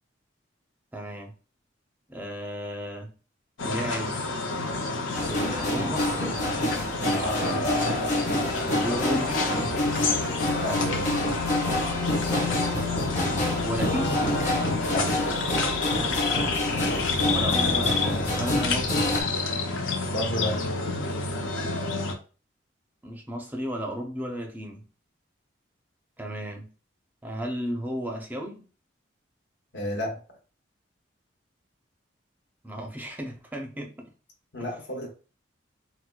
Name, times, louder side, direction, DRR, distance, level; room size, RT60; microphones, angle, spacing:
voice 1, 0.9-1.3 2.1-3.1 3.6-4.2 5.3-6.1 8.8-9.5 12.4-12.6 13.1-13.4 13.6-14.2 17.3-19.1 23.0-24.8 26.2-26.7 27.2-28.6 32.6-34.1 34.6-34.7, equal, 10° right, 1 dB, 0.5 m, -33 dB
sound 1, 3.6-22.1, left 3 dB, 80° left, 0.6 m, -29 dB
sound 2, 5.1-19.2, left 1 dB, 40° left, 0.8 m, -28 dB
voice 2, 10.6-11.1 14.9-15.1 20.1-20.6 29.7-30.2 34.5-35.1, left 1 dB, 65° left, 0 dB, 1.0 m, -31 dB
4.3 x 2.1 x 2.2 m, 0.36 s
head